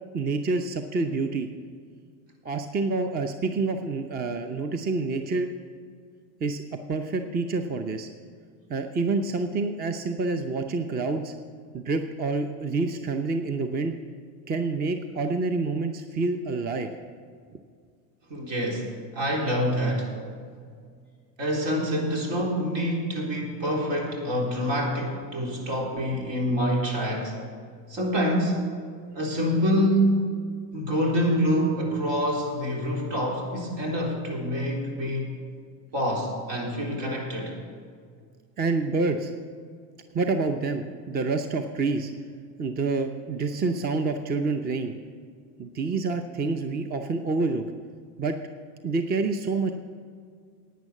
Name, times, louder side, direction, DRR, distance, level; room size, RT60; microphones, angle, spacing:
voice 1, 0.1-1.5 2.4-5.5 6.4-8.1 8.7-11.3 11.7-13.9 14.5-16.9 38.6-39.3 40.1-42.1 42.6-44.9 45.6-47.6 48.2-48.4 48.8-49.7, right 3 dB, 20° right, 7 dB, 0.7 m, -27 dB
voice 2, 18.3-18.9 19.1-20.2 21.4-27.4 27.9-28.6 29.1-30.2 30.7-35.3 35.9-37.6, equal, 60° right, -1 dB, 3.9 m, -26 dB
10.5 x 9.3 x 7.2 m, 2.1 s
supercardioid pair, 105°, 46 cm